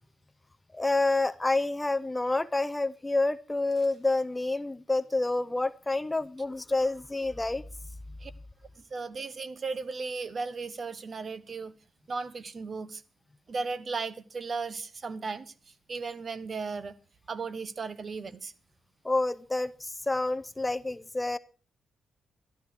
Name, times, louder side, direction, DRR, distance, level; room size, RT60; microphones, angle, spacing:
voice 1, 0.7-7.6 19.0-21.4, left 2 dB, 15° left, 0.5 m, -28 dB
sound 1, 3.7-4.3 4.6-4.7, right 3 dB, 70° right, 4.2 m, -63 dB
voice 2, 8.9-11.7 12.1-13.0 13.5-15.5 15.9-16.9 17.3-18.5, right 4 dB, 40° right, 0.9 m, -35 dB
12.5 x 12.0 x 4.7 m
cardioid pair, 110°, 0 cm